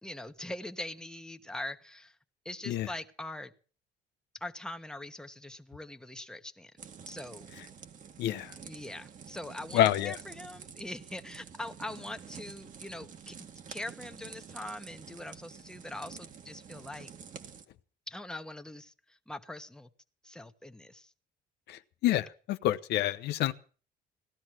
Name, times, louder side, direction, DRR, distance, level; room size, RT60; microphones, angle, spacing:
voice 1, 0.0-2.2 2.4-3.5 4.4-6.7 7.1-7.5 8.6-13.3 13.7-17.1 18.1-19.9 20.2-21.1, left 1 dB, 5° left, 7 dB, 1.4 m, -42 dB
sound 1, 6.8-17.6, right 7 dB, 50° right, 2.0 m, -48 dB
voice 2, 8.2-8.5 9.7-10.2 21.7-23.5, left 13 dB, 80° left, 11 dB, 1.0 m, -28 dB
17.5 x 12.5 x 6.1 m, 0.40 s
cardioid pair, 110°, 17 cm